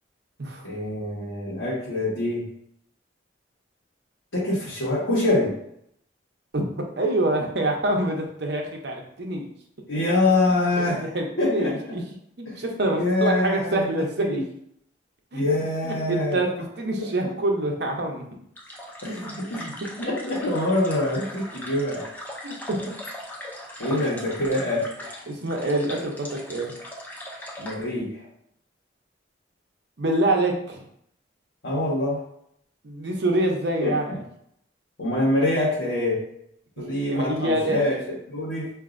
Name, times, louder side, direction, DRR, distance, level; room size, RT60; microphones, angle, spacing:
voice 1, 0.6-2.5 4.3-5.6 9.9-11.1 11.4-12.0 12.4-12.6 12.9-14.4 15.3-16.4 17.0-17.1 19.0-19.7 20.0-22.1 23.8-25.3 27.6-28.2 31.6-32.2 33.8-33.9 35.0-36.2 36.8-38.7, left 2 dB, 85° left, -6 dB, 1.1 m, -25 dB
voice 2, 7.0-9.5 10.8-12.0 12.4-14.4 15.3-15.4 15.8-18.2 19.2-19.9 22.4-22.8 23.9-24.0 25.3-26.7 30.0-30.8 32.8-34.1 37.1-38.0, right 1 dB, 60° right, 1 dB, 0.7 m, -26 dB
sound 1, 18.6-27.8, left 1 dB, 10° left, 0.4 m, -39 dB
4.9 x 2.6 x 2.5 m, 0.71 s
head